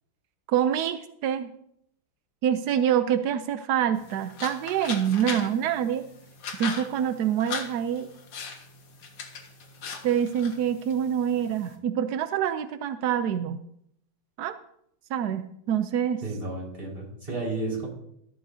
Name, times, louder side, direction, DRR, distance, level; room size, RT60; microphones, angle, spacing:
voice 1, 0.5-1.5 2.4-6.0 6.6-8.1 10.0-13.6 14.4-14.6 15.1-16.2, right 9 dB, 75° right, 10 dB, 0.9 m, -26 dB
sound 1, 3.9-11.8, left 5 dB, 80° left, 2.5 m, -39 dB
voice 2, 16.2-17.9, right 2 dB, 25° right, -4 dB, 5.2 m, -32 dB
15.5 x 13.0 x 2.7 m, 0.72 s
omnidirectional pair, 2.4 m